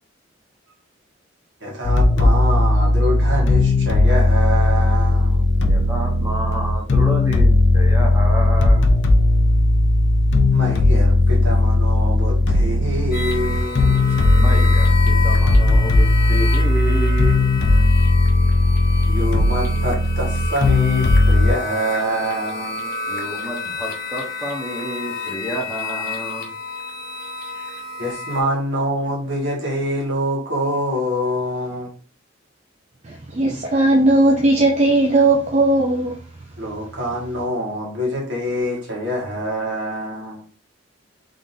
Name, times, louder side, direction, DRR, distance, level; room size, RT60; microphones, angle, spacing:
voice 1, 1.6-5.5 10.5-14.2 19.1-22.9 28.0-31.9 36.6-40.4, equal, 70° right, 1.7 m, -25 dB
sound 1, 1.8-21.5, left 2 dB, 75° left, 0.6 m, -16 dB
voice 2, 5.6-7.5 7.7-8.9 14.4-17.4 23.1-26.5 27.5-27.7, right 1 dB, 15° right, 0.8 m, -29 dB
sound 2, 13.1-28.4, left 3 dB, 50° left, 1.0 m, -30 dB
voice 3, 33.0-36.2, right 2 dB, 35° right, 0.5 m, -17 dB
3.8 x 3.5 x 2.7 m
head